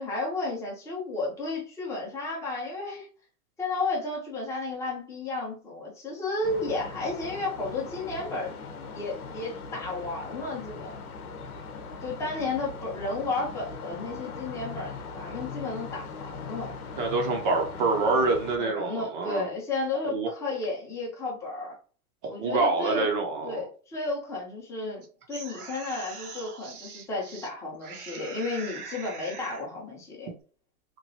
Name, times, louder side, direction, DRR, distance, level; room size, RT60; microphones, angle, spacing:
voice 1, 0.0-3.1 3.6-8.6 8.9-11.0 12.0-16.7 18.6-21.7 22.3-23.1 23.4-30.3, left 3 dB, 5° left, -4 dB, 0.7 m, -33 dB
sound 1, 6.4-18.6, left 4 dB, 80° left, 0.9 m, -40 dB
voice 2, 17.0-19.5 20.0-20.3 22.2-23.6, right 3 dB, 35° right, 3 dB, 0.6 m, -26 dB
sound 2, 25.0-27.5 27.8-29.7, right 5 dB, 80° right, 1.1 m, -42 dB
3.0 x 2.6 x 2.7 m, 0.38 s
hypercardioid pair, 140°, 44 cm